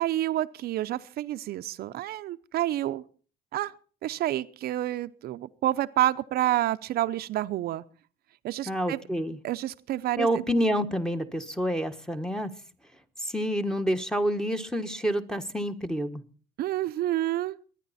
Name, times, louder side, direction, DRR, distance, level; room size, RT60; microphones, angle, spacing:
voice 1, 0.0-3.0 3.5-3.7 4.0-7.8 8.4-9.0 9.4-10.4 16.6-17.6, right 14 dB, 65° right, 0.6 m, -29 dB
voice 2, 8.7-9.4 10.2-12.6 13.2-16.2, equal, 5° left, 1.2 m, -28 dB
23.0 x 9.9 x 4.2 m
cardioid pair, 110°, 17 cm